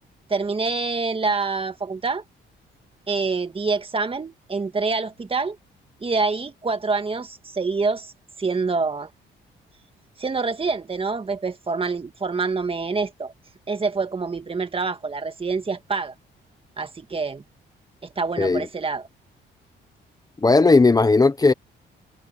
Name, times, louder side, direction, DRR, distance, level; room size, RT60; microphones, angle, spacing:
voice 1, 0.3-2.2 3.1-5.6 6.0-8.1 8.4-9.1 10.2-13.3 13.7-16.1 16.8-17.4 18.0-19.1, right 4 dB, 30° right, 2.0 m, -26 dB
voice 2, 20.4-21.5, left 3 dB, 20° left, 0.9 m, -16 dB
cardioid pair, 90°, 20 cm